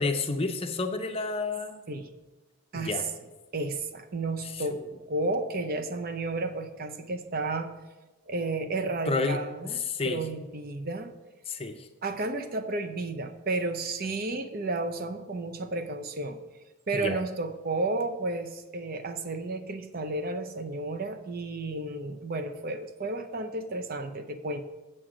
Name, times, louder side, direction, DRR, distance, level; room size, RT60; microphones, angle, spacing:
voice 1, 0.0-1.8 2.7-3.1 9.1-9.4 9.7-10.2 11.5-11.9 16.9-17.2, left 3 dB, 25° left, 5 dB, 0.6 m, -30 dB
voice 2, 3.5-4.8 5.1-7.7 8.3-11.1 12.0-16.4 16.9-24.6, right 2 dB, 40° right, 8 dB, 0.6 m, -32 dB
7.7 x 7.7 x 5.0 m, 1.1 s
head